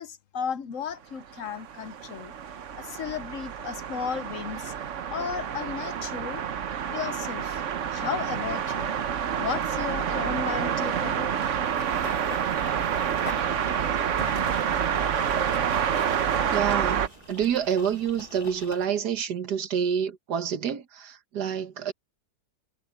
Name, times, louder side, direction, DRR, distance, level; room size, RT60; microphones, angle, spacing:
voice 1, 0.0-2.3 2.8-4.7 5.1-6.4 6.9-7.6 7.9-8.9 9.4-11.3, left 7 dB, 60° left, 1.1 m, -34 dB
sound 1, 1.3-17.1, right 8 dB, 55° right, 1.1 m, -28 dB
Run / Bird vocalization bird call bird song, 11.4-18.9, left 3 dB, 35° left, 2.0 m, -44 dB
sound 2, 13.1-18.8, right 4 dB, 30° right, 1.0 m, -45 dB
voice 2, 16.5-21.9, right 8 dB, 90° right, 1.8 m, -28 dB
omnidirectional pair, 1.7 m